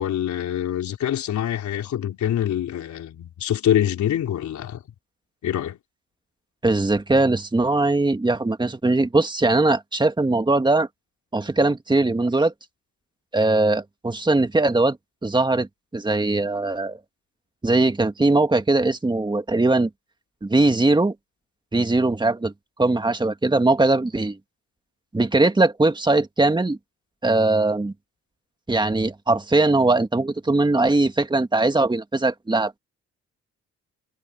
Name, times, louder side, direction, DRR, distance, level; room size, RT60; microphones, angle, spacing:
voice 1, 0.0-4.8 5.4-5.8, left 10 dB, 70° left, 3.9 m, -25 dB
voice 2, 6.6-10.9 11.3-12.5 13.3-15.0 15.2-17.0 17.6-19.9 20.4-21.1 21.7-22.5 22.8-24.4 25.1-26.8 27.2-27.9 28.7-32.7, right 2 dB, 15° right, 2.0 m, -20 dB
cardioid pair, 90°, 30 cm